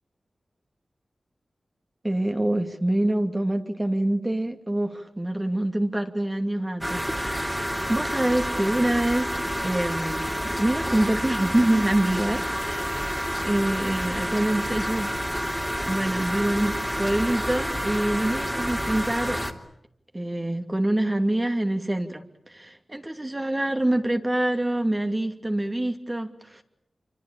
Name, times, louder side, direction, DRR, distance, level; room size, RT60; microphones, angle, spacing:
voice 1, 2.0-9.3 9.6-13.0 13.4-15.1 15.9-19.4 20.1-26.6, right 1 dB, 20° right, 2.8 m, -26 dB
sound 1, 6.8-19.5, equal, 5° right, 3.3 m, -29 dB
26.5 x 25.0 x 8.9 m
cardioid pair, 60°, 0 cm